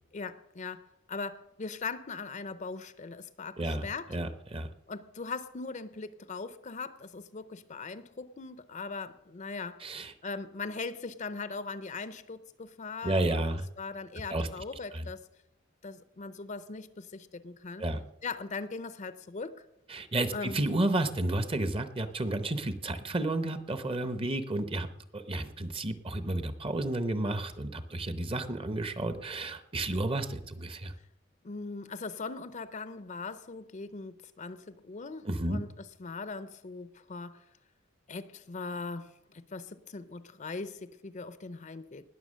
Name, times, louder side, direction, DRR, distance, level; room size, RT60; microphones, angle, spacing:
voice 1, 0.1-4.2 4.9-9.8 10.2-13.4 13.8-15.3 15.8-17.8 18.2-19.6 20.3-20.6 31.4-37.4 38.1-42.1, left 4 dB, 40° left, 0.6 m, -40 dB
voice 2, 3.6-4.7 9.8-10.1 13.0-13.7 14.3-14.5 14.9-15.1 17.8-18.0 19.9-24.9 25.1-30.9 35.2-35.6, right 1 dB, 30° right, 0.8 m, -31 dB
19.5 x 7.0 x 6.3 m
head